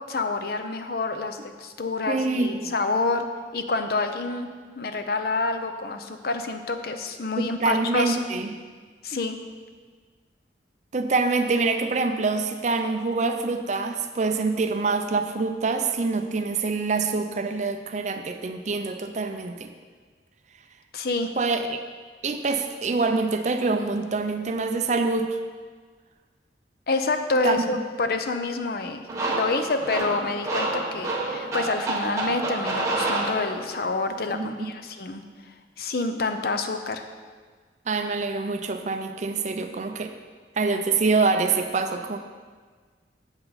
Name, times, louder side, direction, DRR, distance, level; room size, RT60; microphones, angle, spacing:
voice 1, 0.1-3.2 3.5-4.5 4.8-8.2 9.0-9.4 20.9-21.3 26.9-35.2 35.8-37.0, left 3 dB, 60° left, 7 dB, 0.6 m, -28 dB
voice 2, 2.1-2.7 7.4-8.5 10.9-19.7 21.4-21.8 22.2-25.4 27.4-27.6 34.3-34.7 37.9-40.1 40.6-42.2, right 3 dB, 40° right, 7 dB, 0.5 m, -25 dB
sound 1, 29.1-33.9, right 2 dB, 15° right, 1.2 m, -28 dB
7.9 x 7.9 x 4.1 m, 1.5 s
head